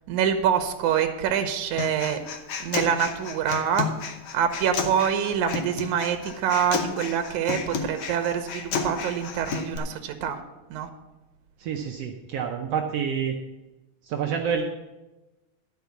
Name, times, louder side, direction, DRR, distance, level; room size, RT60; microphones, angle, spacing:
voice 1, 0.1-2.2 2.6-3.9 4.3-10.4 10.7-10.9, right 8 dB, 90° right, 8 dB, 2.3 m, -25 dB
Human voice, 1.8-9.8, left 5 dB, 60° left, 1.4 m, -32 dB
voice 2, 11.6-13.4 14.0-14.6, right 7 dB, 70° right, 3 dB, 1.6 m, -28 dB
12.0 x 4.8 x 8.1 m, 1.1 s
omnidirectional pair, 3.3 m